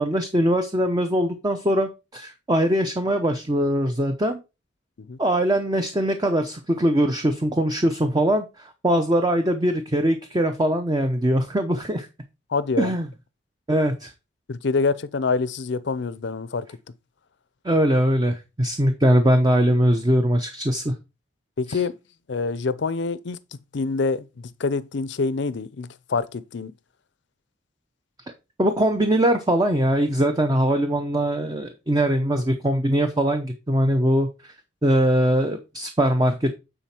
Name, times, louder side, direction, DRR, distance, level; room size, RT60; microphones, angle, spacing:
voice 1, 0.0-4.4 5.2-8.4 8.8-12.1 12.8-13.1 13.7-14.1 17.6-20.9 21.7-21.8 28.6-34.5 34.8-36.6, equal, 20° right, 0.7 m, -21 dB
voice 2, 12.5-12.9 14.5-16.7 21.6-21.9 22.3-23.4 23.7-26.7, left 4 dB, 65° left, 0.5 m, -26 dB
9.2 x 4.1 x 4.3 m
head